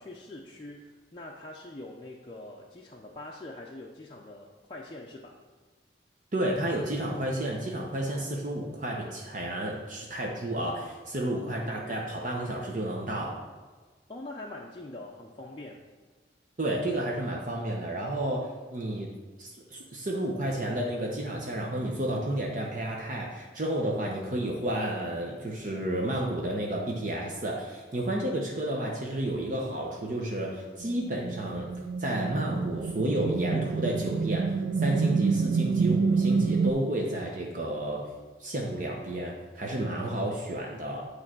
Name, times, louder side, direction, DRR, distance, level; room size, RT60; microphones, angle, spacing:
voice 1, 0.0-5.4 14.1-15.9, left 2 dB, 30° left, -3 dB, 0.5 m, -43 dB
voice 2, 6.3-13.4 16.6-19.1 19.4-31.7 32.0-34.5 34.8-38.0 38.4-41.1, right 1 dB, 45° right, -1 dB, 0.8 m, -31 dB
sound 1, 30.8-36.7, right 5 dB, 80° right, 0.4 m, -27 dB
8.9 x 3.2 x 6.0 m, 1.3 s
head